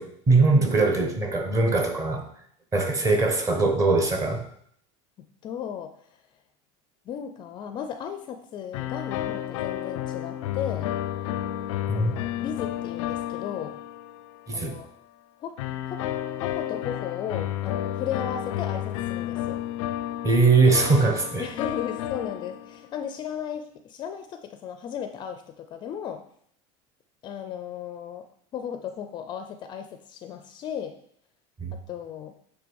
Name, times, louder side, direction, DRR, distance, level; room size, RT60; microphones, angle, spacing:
voice 1, 0.0-2.3 2.7-4.4 11.9-12.2 14.5-14.8 20.2-21.5 31.6-31.7, right 3 dB, 20° right, 4 dB, 1.1 m, -21 dB
voice 2, 5.4-5.9 7.1-10.9 11.9-13.8 14.5-14.9 15.4-15.6 15.9-16.0 16.4-19.6 21.4-26.2 27.2-28.3 28.5-30.9 31.7-32.3, left 8 dB, 30° left, 8 dB, 0.5 m, -35 dB
sound 1, 8.7-14.5 15.6-23.0, left 12 dB, 85° left, 0.5 m, -31 dB
9.0 x 3.3 x 6.3 m, 0.66 s
supercardioid pair, 160°, 16 cm